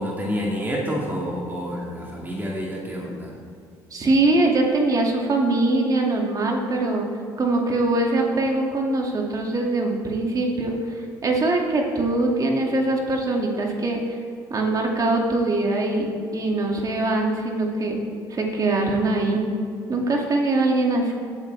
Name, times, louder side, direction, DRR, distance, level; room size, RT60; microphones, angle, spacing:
voice 1, 0.0-3.4, equal, 20° right, -3 dB, 2.2 m, -28 dB
voice 2, 3.9-7.1 7.4-14.0 14.5-18.0 18.3-19.4 19.9-21.1, right 2 dB, 40° right, 0 dB, 2.4 m, -22 dB
16.5 x 8.4 x 3.5 m, 2.4 s
hypercardioid pair, 65°, 10 cm